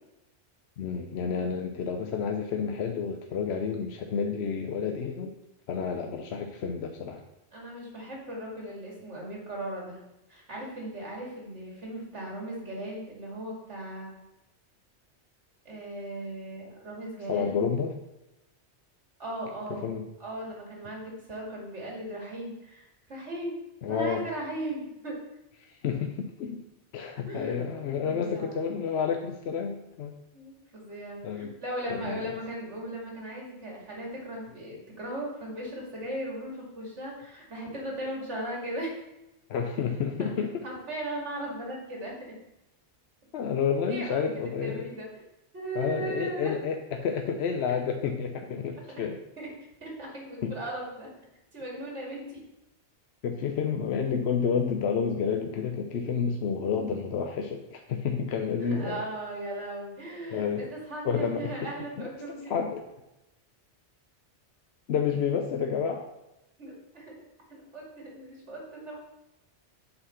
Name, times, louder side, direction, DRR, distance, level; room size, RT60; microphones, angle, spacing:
voice 1, 0.8-5.3 5.7-7.2 17.3-17.9 19.7-20.1 23.8-24.3 25.6-26.6 26.9-30.1 31.2-31.5 31.9-32.2 39.5-40.6 43.3-44.9 45.7-49.2 50.4-50.6 53.2-59.0 60.3-60.7 61.0-61.7 62.0-62.1 62.5-62.8 64.9-66.1, left 6 dB, 70° left, 4 dB, 0.9 m, -30 dB
voice 2, 7.5-10.0 10.3-14.1 15.6-17.6 19.2-19.9 20.2-23.5 23.9-25.2 27.2-27.6 28.0-28.7 30.3-39.0 40.2-40.3 40.6-42.3 43.9-45.2 45.5-46.5 48.9-49.0 49.4-49.5 49.8-51.1 51.5-52.4 58.6-62.6 66.6-67.2 67.5-68.9, right 1 dB, 80° right, -2 dB, 2.6 m, -37 dB
8.0 x 4.1 x 5.6 m, 0.94 s
omnidirectional pair, 1.2 m